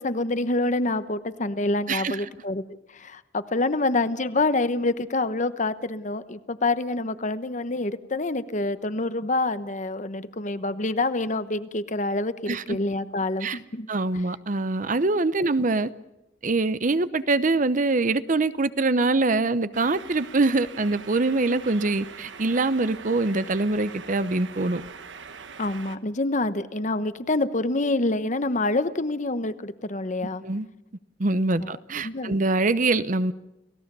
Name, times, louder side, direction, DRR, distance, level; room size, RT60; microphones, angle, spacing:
voice 1, 0.0-13.9 25.6-30.4 31.6-31.7 32.0-32.4, left 2 dB, 40° left, 1.0 m, -27 dB
voice 2, 13.9-15.9 16.4-24.8 30.4-30.7 31.2-33.3, right 3 dB, 45° right, 0.8 m, -24 dB
sound 1, 19.7-26.0, right 5 dB, 85° right, 1.1 m, -43 dB
29.5 x 17.0 x 6.9 m
head